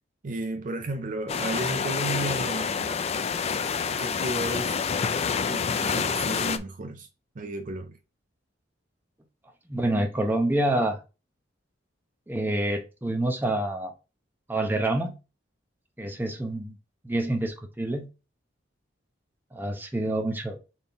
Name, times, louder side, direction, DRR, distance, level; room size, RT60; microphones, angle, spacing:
voice 1, 0.2-3.0 3.9-4.8 5.5-7.1 7.3-8.0, right 2 dB, 45° right, 0.5 m, -33 dB
sound 1, 1.3-6.6, left 6 dB, 35° left, 0.4 m, -27 dB
voice 2, 9.7-11.0 12.3-13.9 14.5-15.2 16.0-16.8 17.0-18.1 19.5-20.6, right 1 dB, 10° right, 0.8 m, -27 dB
4.3 x 3.5 x 3.5 m
head